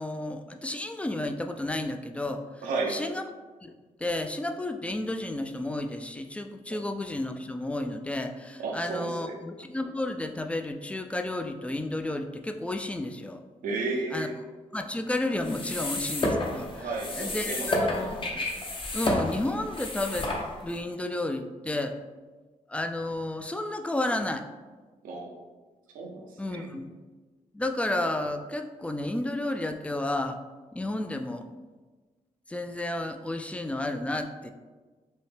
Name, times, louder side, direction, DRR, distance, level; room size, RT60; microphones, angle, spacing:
voice 1, 0.0-3.3 3.6-3.7 4.0-13.4 14.1-14.3 14.7-18.4 18.9-20.3 20.6-22.0 22.7-24.4 26.4-26.9 27.5-30.4 30.7-31.5 32.5-34.5, left 1 dB, 10° left, 6 dB, 0.3 m, -32 dB
voice 2, 2.6-3.0 8.6-9.3 13.6-14.4 16.7-18.1 25.0-25.3 25.9-26.7, right 3 dB, 85° right, -1 dB, 0.7 m, -33 dB
sound 1, 15.4-20.8, left 1 dB, 40° left, 0.7 m, -31 dB
5.4 x 2.1 x 3.3 m, 1.3 s
cardioid pair, 75°, 14 cm